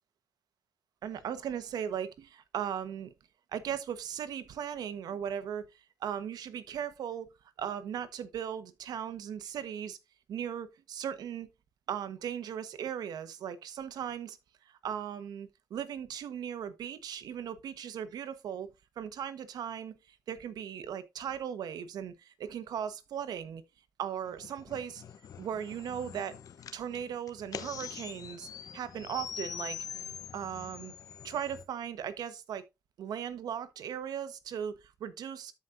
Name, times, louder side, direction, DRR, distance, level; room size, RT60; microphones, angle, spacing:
voice 1, 1.0-3.1 3.5-5.6 6.0-7.3 7.6-10.0 10.3-11.5 11.9-14.4 14.8-18.7 19.0-19.9 20.3-23.6 24.0-25.0 25.4-26.3 26.7-29.8 30.3-30.9 31.2-32.6 33.0-34.7 35.0-35.5, right 9 dB, 80° right, 1.2 m, -37 dB
sound 1, 24.2-31.6, left 8 dB, 65° left, 0.9 m, -44 dB
13.5 x 5.2 x 2.6 m
cardioid pair, 90°, 7 cm